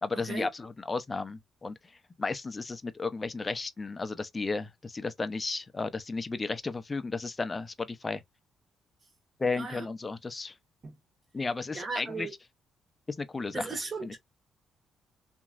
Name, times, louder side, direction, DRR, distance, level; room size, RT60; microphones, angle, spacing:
voice 1, 0.0-1.7 2.2-8.2 9.4-10.5 11.3-12.3 13.1-13.7 14.0-14.1, left 3 dB, 25° left, 0.5 m, -33 dB
voice 2, 9.5-9.9 10.8-10.9 11.7-12.3 13.5-14.2, right 4 dB, 40° right, 1.3 m, -36 dB
3.0 x 2.6 x 2.4 m
cardioid pair, 90°, 0 cm